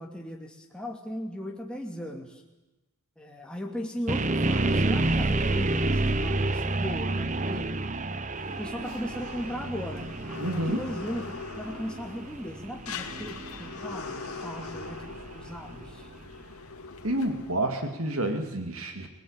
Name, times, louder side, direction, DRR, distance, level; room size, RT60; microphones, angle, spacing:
voice 1, 0.0-2.4 3.2-7.7 8.5-10.1 10.5-15.0 15.3-16.1, equal, 5° left, 1 dB, 2.6 m, -37 dB
sound 1, 4.1-16.0, right 2 dB, 35° right, 0.8 m, -30 dB
sound 2, 8.3-17.5, left 4 dB, 85° left, 2.2 m, -41 dB
voice 2, 10.4-10.8 17.0-19.1, right 1 dB, 75° right, 6 dB, 2.6 m, -29 dB
24.5 x 18.5 x 9.0 m, 1.0 s
head